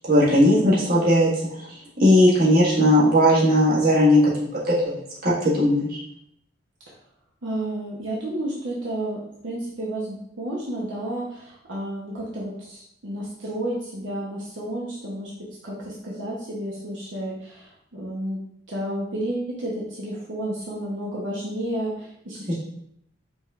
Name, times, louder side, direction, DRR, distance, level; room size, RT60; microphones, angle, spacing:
voice 1, 0.0-1.3 1.6-1.7 2.0-6.0 22.5-22.6, equal, 55° right, -7 dB, 1.5 m, -18 dB
voice 2, 7.4-18.4 18.7-22.5, right 1 dB, 85° right, -5 dB, 0.9 m, -31 dB
5.1 x 3.3 x 2.4 m, 0.73 s
head